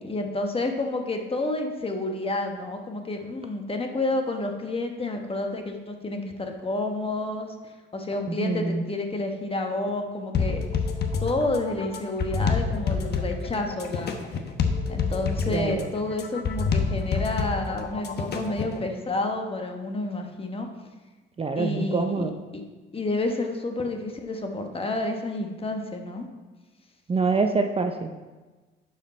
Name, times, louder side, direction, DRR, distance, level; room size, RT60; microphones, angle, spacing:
voice 1, 0.0-10.9 11.2-14.1 14.9-20.7 21.5-22.3 22.9-26.2, left 2 dB, 30° left, 4 dB, 1.2 m, -30 dB
voice 2, 8.3-8.8 15.5-15.9 21.4-22.3 27.1-28.1, right 4 dB, 30° right, 6 dB, 0.6 m, -25 dB
sound 1, 10.3-18.8, left 5 dB, 55° left, 1.0 m, -27 dB
11.0 x 5.1 x 4.2 m, 1.2 s
cardioid pair, 90°, 20 cm